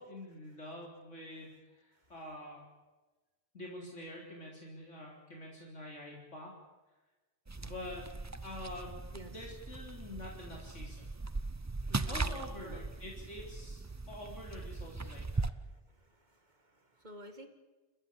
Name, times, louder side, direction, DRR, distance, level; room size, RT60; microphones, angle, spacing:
voice 1, 0.0-2.6 3.5-6.5 7.6-8.1 8.4-11.1 12.1-15.5, left 1 dB, 70° left, -1 dB, 4.3 m, -47 dB
sound 1, 7.5-15.5, right 3 dB, 20° right, 0.5 m, -39 dB
voice 2, 11.9-12.8 14.0-14.1 15.7-17.5, right 2 dB, 35° right, 7 dB, 2.4 m, -52 dB
29.5 x 13.5 x 8.7 m, 1.2 s
omnidirectional pair, 1.3 m